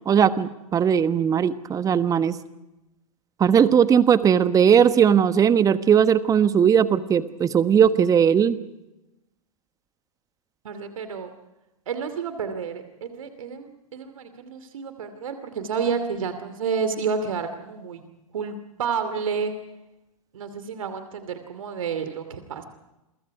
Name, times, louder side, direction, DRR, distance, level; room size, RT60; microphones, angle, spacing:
voice 1, 0.1-2.4 3.4-8.6, right 8 dB, 20° right, 12 dB, 1.3 m, -18 dB
voice 2, 10.6-11.3 11.9-18.1 18.3-19.5 20.3-22.6, right 6 dB, 65° right, 9 dB, 2.6 m, -30 dB
29.0 x 24.0 x 4.9 m, 0.97 s
figure-of-eight pair, 100°, 18 cm